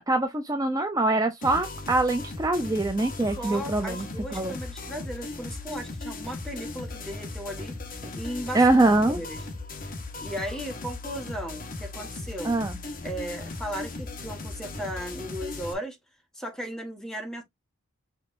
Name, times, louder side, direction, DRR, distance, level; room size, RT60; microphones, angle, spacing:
voice 1, 0.0-4.5 8.5-9.2 12.4-12.7, right 2 dB, 15° right, 0.5 m, -24 dB
sound 1, 1.4-15.7, left 3 dB, 40° left, 1.2 m, -37 dB
voice 2, 3.4-7.8 8.1-8.7 9.1-9.4 10.2-12.6 13.0-16.0 16.3-17.4, equal, ahead, 1.4 m, -36 dB
6.0 x 3.4 x 2.6 m
head